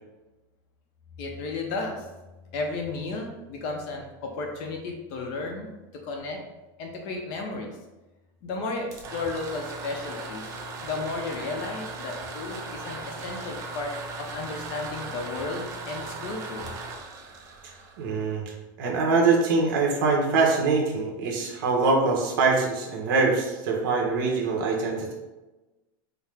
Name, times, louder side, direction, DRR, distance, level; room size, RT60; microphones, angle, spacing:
voice 1, 1.2-2.1 2.5-5.7 6.0-6.4 6.8-7.7 8.4-10.5 10.8-16.7, left 3 dB, 40° left, 2 dB, 0.6 m, -33 dB
Electric Can Opener, 8.7-18.5, right 3 dB, 25° right, 0.5 m, -38 dB
voice 2, 17.6-25.1, right 4 dB, 60° right, -1 dB, 1.0 m, -24 dB
4.5 x 2.1 x 3.4 m, 1.1 s
supercardioid pair, 175°, 12 cm